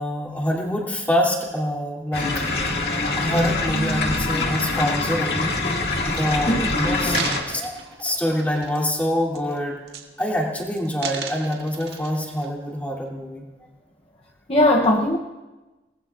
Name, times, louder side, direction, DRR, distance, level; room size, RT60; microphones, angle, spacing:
voice 1, 0.0-2.3 3.2-5.5 6.0-7.2 7.5-9.8 10.2-13.4, equal, 10° left, -3 dB, 3.0 m, -25 dB
sound 1, 2.1-7.4, left 2 dB, 65° left, 2.2 m, -24 dB
sound 2, 6.9-9.0 9.3-9.6 9.9-10.4 10.7-12.5 13.0-13.1, right 6 dB, 75° right, 1.8 m, -35 dB
voice 2, 14.5-15.2, left 1 dB, 35° left, 1 dB, 0.8 m, -19 dB
29.0 x 19.5 x 2.5 m, 1.2 s
head